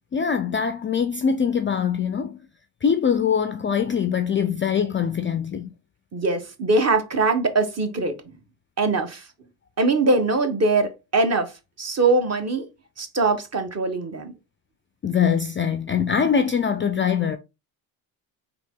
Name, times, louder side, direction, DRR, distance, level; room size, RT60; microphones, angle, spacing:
voice 1, 0.1-2.4 2.8-5.7 15.0-17.4, left 7 dB, 30° left, 0.4 m, -23 dB
voice 2, 6.1-8.3 8.8-9.2 9.8-11.5 11.8-12.7 13.0-14.3, right 3 dB, 35° right, 1.1 m, -22 dB
3.9 x 3.0 x 3.6 m
cardioid pair, 80°, 46 cm